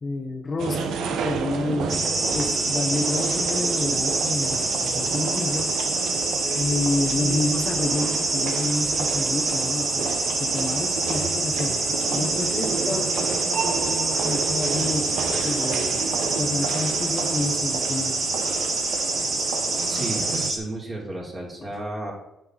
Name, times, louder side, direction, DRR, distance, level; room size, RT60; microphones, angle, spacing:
voice 1, 0.0-2.1 2.3-5.7 6.5-18.3, left 2 dB, 35° left, 4 dB, 1.1 m, -29 dB
sound 1, 0.6-20.5, right 6 dB, 80° right, 0.9 m, -31 dB
sound 2, 1.9-20.6, right 3 dB, 55° right, 2.4 m, -26 dB
voice 2, 19.9-22.1, right 1 dB, 30° right, -3 dB, 3.5 m, -33 dB
9.3 x 6.8 x 4.1 m, 0.89 s
cardioid pair, 90°, 0 cm